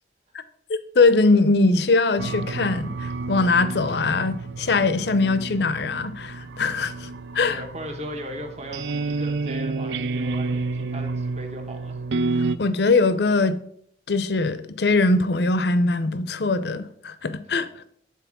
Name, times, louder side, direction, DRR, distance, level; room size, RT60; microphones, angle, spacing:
voice 1, 0.7-7.6 12.6-13.6 14.1-17.7, left 3 dB, 65° left, 0.6 m, -21 dB
sound 1, 2.2-12.6, right 3 dB, 75° right, 0.5 m, -30 dB
voice 2, 7.5-12.0, equal, 35° right, 1.2 m, -37 dB
9.2 x 4.1 x 6.0 m
head